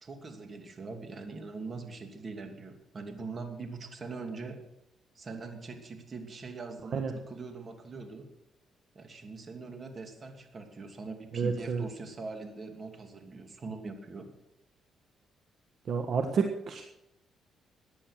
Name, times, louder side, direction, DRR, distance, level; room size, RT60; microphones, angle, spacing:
voice 1, 0.0-4.6 5.1-8.3 8.9-14.3, right 4 dB, 40° right, 5 dB, 2.7 m, -42 dB
voice 2, 11.3-11.8 15.9-16.8, right 5 dB, 55° right, 5 dB, 1.4 m, -29 dB
15.0 x 9.8 x 6.5 m, 0.85 s
cardioid pair, 90°, 0 cm